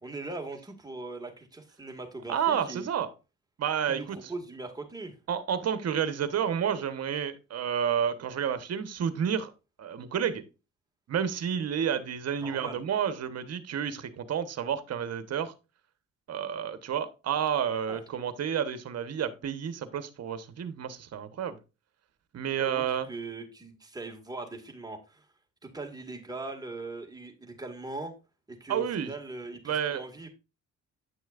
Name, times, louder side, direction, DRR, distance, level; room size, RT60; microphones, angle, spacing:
voice 1, 0.0-2.9 3.8-5.2 12.4-12.8 17.9-18.0 22.6-25.2 25.6-28.1 28.5-30.3, right 3 dB, 15° right, 2.0 m, -40 dB
voice 2, 2.3-3.1 3.6-4.2 5.3-9.5 9.8-10.4 11.1-15.5 16.3-21.6 22.3-23.1 28.7-29.1 29.6-30.0, right 8 dB, 55° right, 1.2 m, -30 dB
9.5 x 6.2 x 2.5 m
cardioid pair, 90°, 30 cm